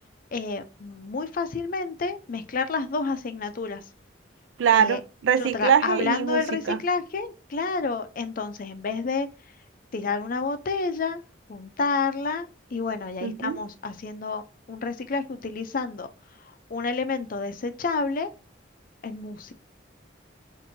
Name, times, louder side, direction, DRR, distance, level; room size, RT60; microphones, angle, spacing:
voice 1, 0.3-3.8 4.7-5.0 5.4-9.3 9.9-11.2 11.5-14.4 14.7-16.1 16.7-18.3 19.0-19.5, left 4 dB, 45° left, 0.4 m, -29 dB
voice 2, 4.6-6.4 6.7-6.8 13.2-13.6, right 7 dB, 80° right, 0.4 m, -22 dB
4.3 x 2.6 x 2.6 m
head